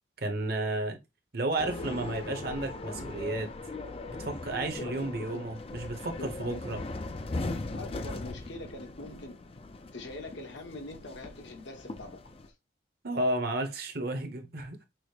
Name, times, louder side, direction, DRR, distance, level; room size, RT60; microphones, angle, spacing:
voice 1, 0.2-1.0 1.3-3.5 4.1-6.8 13.0-14.8, right 2 dB, 55° right, 0.9 m, -32 dB
sound 1, 1.6-12.5, left 2 dB, 30° left, 0.4 m, -39 dB
voice 2, 4.8-5.1 6.2-6.6 7.7-9.4 9.9-12.2, left 2 dB, 65° left, 1.1 m, -43 dB
6.1 x 2.1 x 3.2 m
head